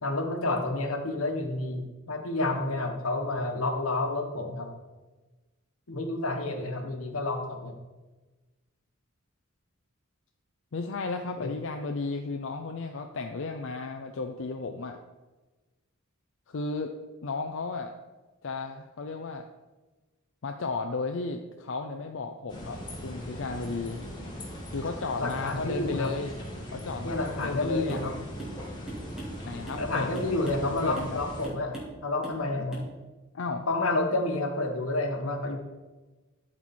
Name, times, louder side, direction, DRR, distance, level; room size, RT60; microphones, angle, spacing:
voice 1, 0.0-4.7 5.9-7.7 11.4-11.5 25.2-26.1 27.0-28.1 29.8-31.7 32.0-32.8 33.7-35.6, left 2 dB, 85° left, 4 dB, 1.3 m, -29 dB
voice 2, 10.7-15.0 16.5-16.9 17.2-17.9 18.4-19.5 20.4-24.0 24.7-26.4 26.7-28.0 29.4-31.2 33.3-33.7, left 3 dB, 60° left, 4 dB, 0.5 m, -34 dB
sound 1, 22.5-31.5, equal, 20° left, 1.9 m, -40 dB
sound 2, 27.9-28.1 28.4-28.6 28.9-29.9 30.1-30.7 30.9-31.2 31.4-32.0 32.2-32.4 32.7-32.9, right 2 dB, 5° right, 2.1 m, -41 dB
12.5 x 4.4 x 4.3 m, 1.2 s
head